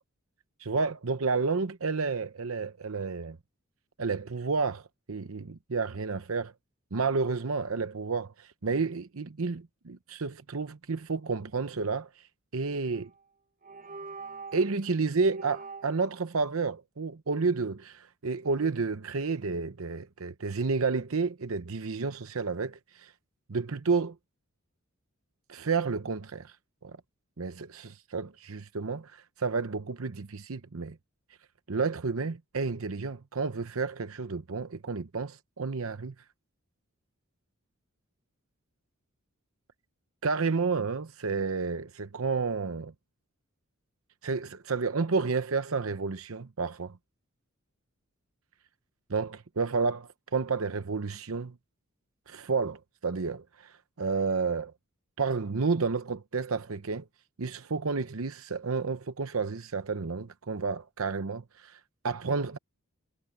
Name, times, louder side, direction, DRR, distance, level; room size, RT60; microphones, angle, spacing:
voice 1, 0.6-3.4 4.0-6.5 6.9-12.2 12.5-13.1 14.5-23.1 23.5-24.1 25.5-26.5 26.8-27.0 27.4-31.0 31.7-36.1 40.2-42.9 44.2-47.0 49.1-51.5 52.3-54.7 55.2-57.0 57.4-62.6, right 4 dB, 70° right, 0.8 m, -31 dB
sound 1, 12.9-13.2 13.6-14.7 15.3-16.1, right 4 dB, 40° right, 1.1 m, -44 dB
head